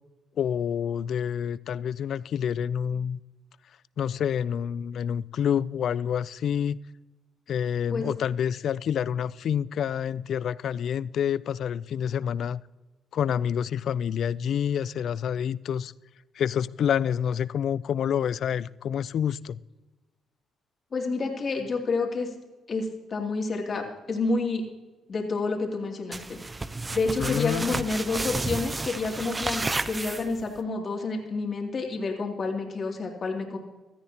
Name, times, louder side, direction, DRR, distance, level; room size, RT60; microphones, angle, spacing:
voice 1, 0.4-3.2 4.0-6.8 7.5-12.6 13.1-15.9 16.4-19.6 27.2-27.8, left 8 dB, 65° left, 0.3 m, -28 dB
voice 2, 20.9-22.3 22.7-24.6 25.1-33.6, left 3 dB, 45° left, 2.7 m, -29 dB
sound 1, 26.1-30.6, right 3 dB, 20° right, 0.6 m, -32 dB
16.5 x 13.5 x 2.9 m
cardioid pair, 90°, 0 cm